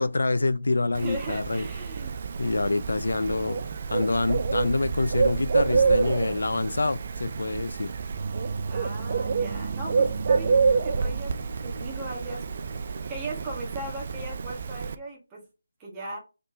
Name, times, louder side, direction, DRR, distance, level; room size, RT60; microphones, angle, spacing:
voice 1, 0.0-1.6 2.4-3.6 3.9-7.9, left 3 dB, 65° left, 0.3 m, -26 dB
Bird, 0.9-14.9, right 5 dB, 40° right, 0.4 m, -28 dB
voice 2, 1.0-2.1 5.8-6.5 8.7-11.3 11.6-12.4 12.9-15.4 15.8-16.2, right 2 dB, 15° right, 1.4 m, -38 dB
sound 1, 7.6-13.1, equal, 90° left, 1.3 m, -50 dB
3.9 x 3.5 x 2.6 m
figure-of-eight pair, 155°, 0 cm